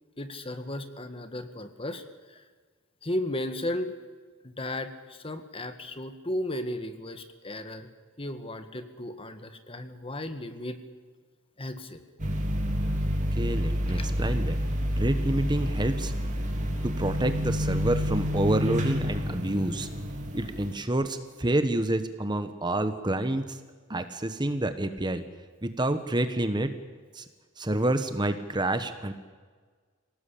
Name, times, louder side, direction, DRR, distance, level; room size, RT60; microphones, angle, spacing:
voice 1, 0.2-2.4 3.0-3.9 4.4-7.9 8.2-10.8 11.6-12.0 13.9-14.1, left 1 dB, 25° left, 9 dB, 1.7 m, -35 dB
sound 1, 12.2-20.7, equal, 35° right, 3.1 m, -29 dB
voice 2, 13.4-14.6 15.0-16.1 16.8-19.9 20.3-23.6 23.9-25.2 25.6-26.7 27.1-27.2 27.6-29.1, right 1 dB, 20° right, 9 dB, 1.1 m, -28 dB
26.5 x 18.0 x 8.6 m, 1.5 s
head